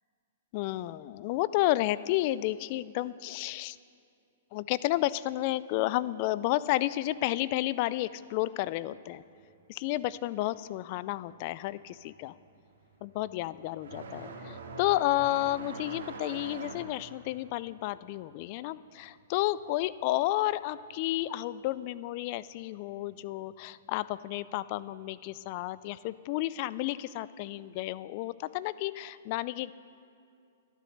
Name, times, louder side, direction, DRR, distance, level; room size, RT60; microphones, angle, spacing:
voice 1, 0.5-3.8 4.5-9.2 9.7-12.3 13.0-29.7, left 16 dB, 45° left, 18 dB, 0.3 m, -31 dB
sound 1, 11.2-11.5 11.9-20.2 20.5-21.5 22.5-22.6 23.4-23.5 25.2-25.4, right 3 dB, 80° right, 2.1 m, -45 dB
11.5 x 10.5 x 6.5 m, 2.4 s
hypercardioid pair, 125°, 0 cm